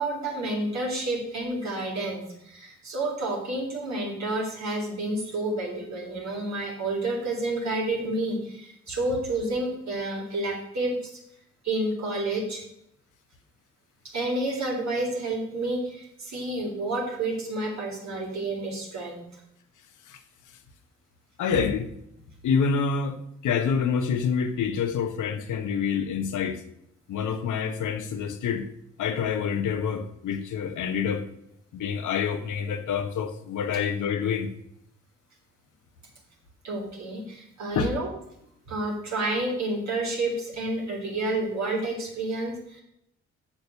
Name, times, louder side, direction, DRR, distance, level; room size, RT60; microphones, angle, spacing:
voice 1, 0.0-11.2 11.6-12.6 14.1-19.4 36.6-38.1 38.7-42.8, right 2 dB, 60° right, -1 dB, 3.7 m, -30 dB
voice 2, 21.4-21.9 22.4-26.6 27.1-28.7 29.0-31.2 31.7-34.5 37.7-37.9, left 6 dB, 70° left, 8 dB, 1.1 m, -27 dB
7.1 x 6.5 x 6.9 m, 0.76 s
hypercardioid pair, 45°, 32 cm